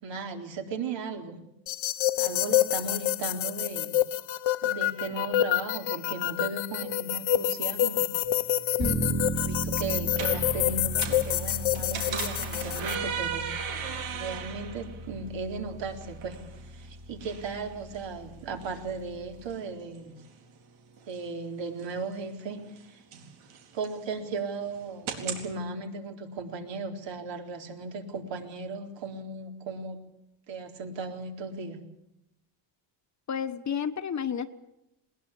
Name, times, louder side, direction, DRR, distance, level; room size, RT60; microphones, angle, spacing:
voice 1, 0.0-1.4 2.2-4.0 4.6-8.1 9.4-13.5 14.1-16.4 16.7-20.2 21.1-22.6 22.9-23.0 23.7-30.0 30.5-31.8, right 4 dB, 65° right, 4 dB, 4.2 m, -36 dB
sound 1, 1.7-12.9, left 13 dB, 70° left, 1.2 m, -28 dB
sound 2, 8.2-25.5, right 7 dB, 85° right, 4.3 m, -40 dB
voice 2, 8.8-9.4 33.3-34.5, left 7 dB, 35° left, 10 dB, 1.3 m, -32 dB
sound 3, 8.8-19.5, right 1 dB, 25° right, 3.7 m, -36 dB
21.0 x 20.0 x 8.5 m, 0.86 s
cardioid pair, 130°, 48 cm